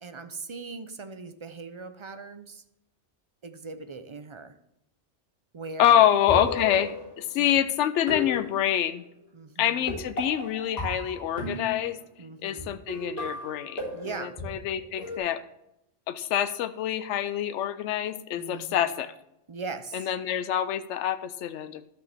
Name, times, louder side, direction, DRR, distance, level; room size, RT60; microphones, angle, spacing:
voice 1, 0.0-2.6 3.4-4.6 5.5-6.1 7.3-7.5 9.3-10.0 12.2-12.7 13.9-14.4 18.4-18.9 19.5-20.1, right 4 dB, 40° right, 9 dB, 0.5 m, -40 dB
voice 2, 5.8-9.0 9.6-12.0 12.4-13.8 14.2-15.4 16.1-19.1 19.9-21.9, left 10 dB, 80° left, 11 dB, 0.9 m, -26 dB
sound 1, 6.1-7.5 8.1-9.0 9.9-12.0 12.6-12.7 12.9-15.2, left 2 dB, 35° left, 4.0 m, -35 dB
13.0 x 6.2 x 3.4 m, 0.82 s
omnidirectional pair, 1.2 m